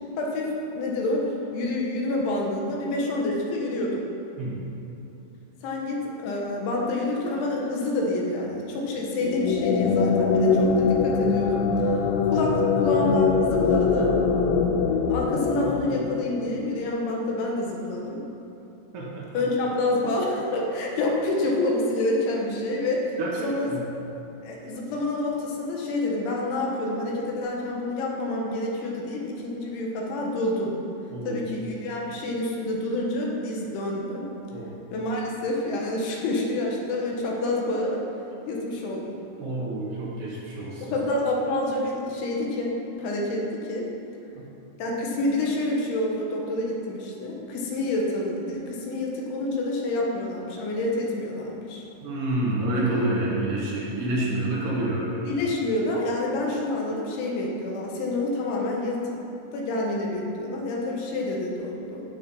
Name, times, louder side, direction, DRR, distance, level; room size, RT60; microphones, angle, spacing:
voice 1, 0.2-4.0 5.6-11.6 12.3-14.1 15.1-18.2 19.3-23.1 23.4-23.8 24.4-30.7 31.2-34.3 34.9-38.0 38.4-39.2 40.8-42.7 43.0-43.9 44.8-51.9 55.3-59.1 59.5-62.0, left 2 dB, 75° left, -2 dB, 3.6 m, -28 dB
sound 1, 9.2-16.6, left 5 dB, 90° left, 3.3 m, -23 dB
voice 2, 18.9-19.4 23.2-23.8 31.1-31.4 34.5-34.7 39.4-40.9 44.3-44.4 52.0-55.2, right 1 dB, 65° right, -4 dB, 3.2 m, -28 dB
11.5 x 9.4 x 5.5 m, 2.9 s
omnidirectional pair, 5.7 m